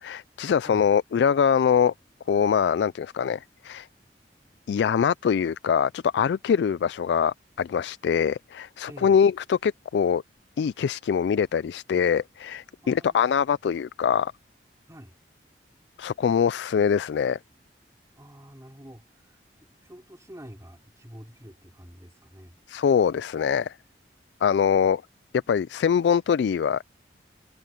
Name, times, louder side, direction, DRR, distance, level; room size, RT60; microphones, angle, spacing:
voice 1, 0.0-1.9 2.3-3.9 4.7-10.2 10.6-14.3 16.0-17.4 22.7-23.7 24.4-25.0 25.3-26.8, left 7 dB, 75° left, 0.3 m, -23 dB
voice 2, 8.9-9.2 12.8-13.5 14.9-15.2 18.2-22.6, equal, 20° right, 3.9 m, -47 dB
head